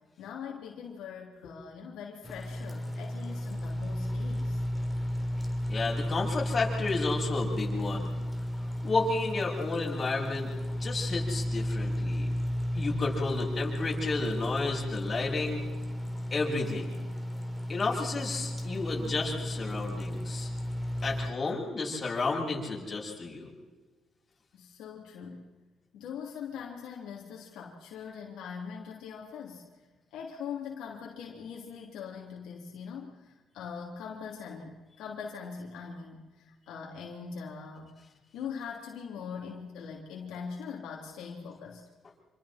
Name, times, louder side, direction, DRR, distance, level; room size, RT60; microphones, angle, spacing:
voice 1, 0.2-4.6 24.5-25.5 25.9-29.6 30.1-38.0 38.3-41.8, left 6 dB, 90° left, -1 dB, 3.2 m, -42 dB
sound 1, 2.2-21.3, equal, ahead, 3.5 m, -33 dB
voice 2, 5.7-8.1 8.8-10.5 10.8-12.3 12.7-15.6 16.3-16.9 17.7-20.5 21.0-23.5, left 3 dB, 35° left, -3 dB, 7.5 m, -32 dB
27.0 x 25.5 x 4.4 m, 1.3 s
cardioid pair, 90°, 0 cm